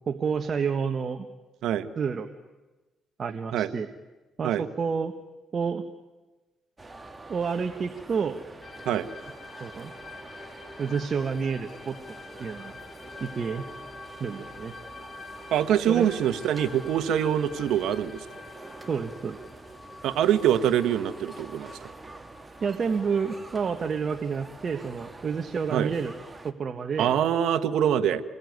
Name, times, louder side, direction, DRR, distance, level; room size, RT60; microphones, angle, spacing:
voice 1, 0.1-1.3 2.0-2.3 3.2-3.9 4.4-5.1 5.5-5.8 7.3-8.4 9.6-9.9 10.8-12.0 12.4-12.7 13.2-13.6 14.2-14.7 15.9-16.1 18.9-19.4 22.6-26.1 26.4-27.1, right 6 dB, 45° right, 7 dB, 1.4 m, -29 dB
sound 1, 6.8-26.5, right 2 dB, 20° right, 2.0 m, -46 dB
sound 2, 8.6-23.8, left 3 dB, 40° left, 5.7 m, -47 dB
voice 2, 15.5-18.2 20.0-21.9 25.7-25.9 27.0-28.2, right 10 dB, 80° right, 9 dB, 1.2 m, -24 dB
27.5 x 21.0 x 9.5 m, 1.2 s
cardioid pair, 90°, 0 cm